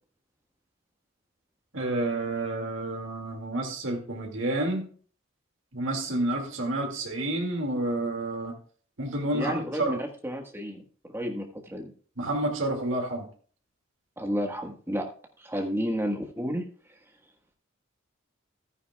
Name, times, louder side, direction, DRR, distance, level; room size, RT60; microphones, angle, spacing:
voice 1, 1.7-4.9 5.7-8.5 9.0-10.0 12.2-13.3, right 1 dB, 70° right, 1 dB, 2.2 m, -29 dB
voice 2, 9.3-10.8 11.1-11.9 14.2-15.1 15.4-16.6, equal, 10° right, 2 dB, 1.4 m, -31 dB
14.0 x 9.7 x 2.3 m, 0.43 s
head